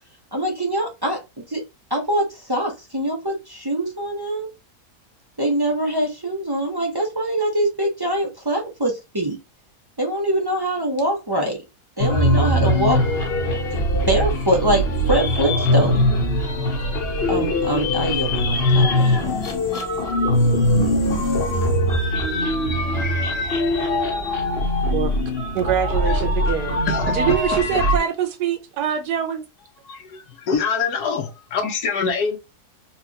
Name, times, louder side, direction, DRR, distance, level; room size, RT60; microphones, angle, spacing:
voice 1, 0.3-1.2 1.5-1.6 1.9-4.5 5.4-9.4 10.0-11.6 12.0-13.0 14.1-16.0 17.3-19.4, right 1 dB, 30° right, 0.4 m, -23 dB
sound 1, 12.0-28.0, left 1 dB, 45° left, 1.0 m, -21 dB
voice 2, 25.5-26.8 27.1-29.4, right 9 dB, 85° right, 1.4 m, -24 dB
voice 3, 26.9-27.2 29.9-32.4, left 5 dB, 80° left, 1.3 m, -25 dB
4.5 x 2.4 x 2.8 m
omnidirectional pair, 1.7 m